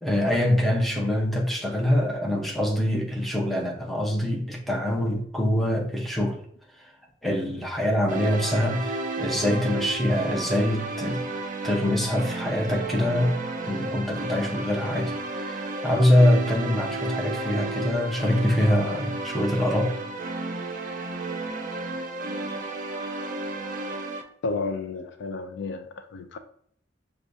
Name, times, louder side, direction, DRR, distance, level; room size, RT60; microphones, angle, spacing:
voice 1, 0.0-6.4 6.8-6.9 7.2-11.2 11.6-13.4 13.7-19.9, left 1 dB, ahead, 0.7 m, -24 dB
sound 1, 8.1-24.2, right 2 dB, 45° right, 0.5 m, -32 dB
voice 2, 24.4-26.4, left 3 dB, 65° left, 0.4 m, -32 dB
6.1 x 2.3 x 2.6 m
head